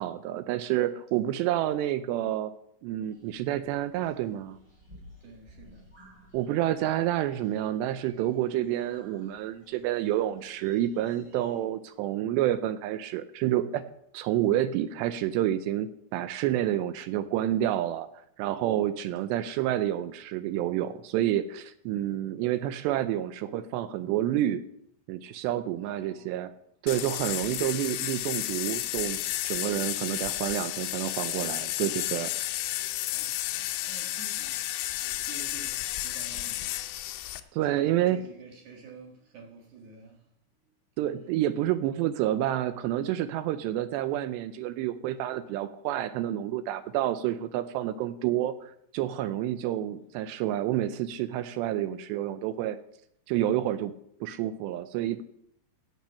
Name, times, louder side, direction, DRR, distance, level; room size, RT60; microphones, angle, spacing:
voice 1, 0.0-2.5 2.8-4.6 6.3-13.9 14.1-18.1 18.4-24.6 25.1-26.5 26.8-32.3 37.5-38.2 41.0-52.8 53.3-53.9 54.2-55.2, right 12 dB, 80° right, 2.5 m, -29 dB
sound 1, 3.0-11.6, equal, 5° right, 5.0 m, -57 dB
voice 2, 5.2-5.9 25.8-26.3 30.5-31.1 33.0-40.3, right 4 dB, 60° right, 2.3 m, -50 dB
sound 2, 26.9-37.4, left 15 dB, 85° left, 3.1 m, -32 dB
17.5 x 7.4 x 5.7 m
omnidirectional pair, 5.3 m